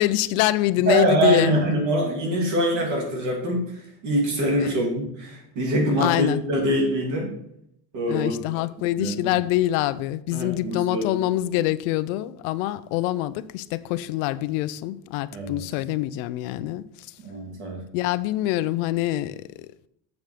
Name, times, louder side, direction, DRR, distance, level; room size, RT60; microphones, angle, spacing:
voice 1, 0.0-1.5 4.6-4.7 6.0-6.4 8.1-16.8 17.9-19.9, left 15 dB, 85° left, 0.6 m, -25 dB
voice 2, 0.8-7.3 7.9-8.4 9.0-9.2 10.3-11.0 15.3-15.6 17.2-17.8, right 1 dB, 50° right, 2.8 m, -24 dB
7.7 x 7.1 x 5.0 m
cardioid pair, 180°, 38 cm